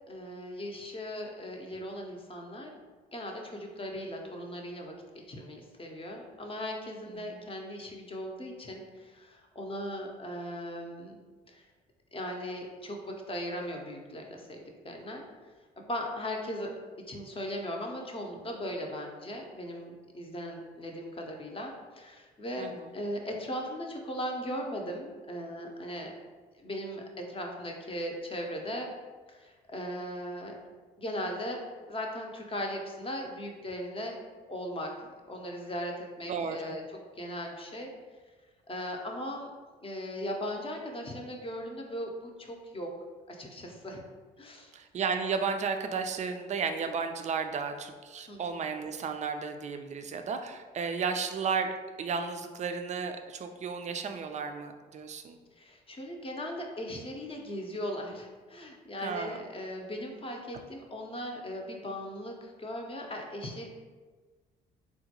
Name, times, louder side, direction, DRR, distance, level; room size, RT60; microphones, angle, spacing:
voice 1, 0.1-2.8 3.1-4.9 5.3-11.1 11.5-11.7 12.1-15.2 15.9-16.7 17.1-26.1 26.6-28.9 29.3-30.5 31.0-31.6 31.9-34.2 34.5-36.8 37.2-37.9 38.7-39.5 39.8-42.9 43.3-44.0 44.4-44.7 48.3-48.6 55.6-63.7, equal, 25° left, 1 dB, 0.7 m, -38 dB
voice 2, 22.6-22.9 36.3-36.8 44.7-55.4 59.0-59.4, right 5 dB, 35° right, 6 dB, 0.4 m, -33 dB
3.7 x 2.2 x 2.9 m, 1.4 s
hypercardioid pair, 55°, 21 cm